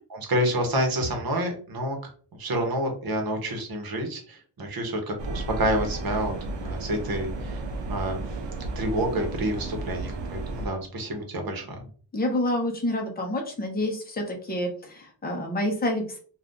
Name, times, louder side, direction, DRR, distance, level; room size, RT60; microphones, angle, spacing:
voice 1, 0.2-2.0 2.4-6.3 6.6-7.6 7.9-8.2 8.8-11.9, right 1 dB, 55° right, 3 dB, 1.0 m, -28 dB
sound 1, 5.2-10.7, right 2 dB, 80° right, 0.6 m, -33 dB
voice 2, 12.1-16.2, left 1 dB, 20° left, 1 dB, 0.7 m, -28 dB
2.6 x 2.4 x 3.5 m, 0.42 s
wide cardioid pair, 160°, 42 cm